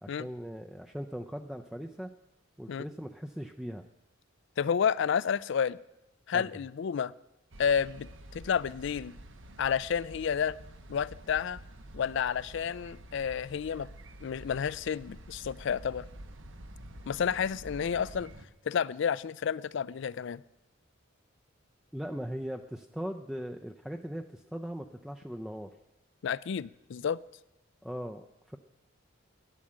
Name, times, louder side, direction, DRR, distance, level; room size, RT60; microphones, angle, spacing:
voice 1, 0.0-2.1 2.6-3.8 6.3-6.5 21.9-25.7 27.8-28.6, equal, ahead, 3 dB, 0.5 m, -39 dB
voice 2, 4.6-5.8 6.3-7.1 7.6-9.2 9.6-10.6 10.9-11.6 11.9-13.9 14.2-16.1 17.1-18.3 18.7-20.4 26.2-27.2, left 7 dB, 60° left, 20 dB, 0.4 m, -30 dB
sound 1, 7.5-18.5, right 1 dB, 65° right, 1.1 m, -49 dB
12.5 x 10.0 x 7.5 m, 0.92 s
head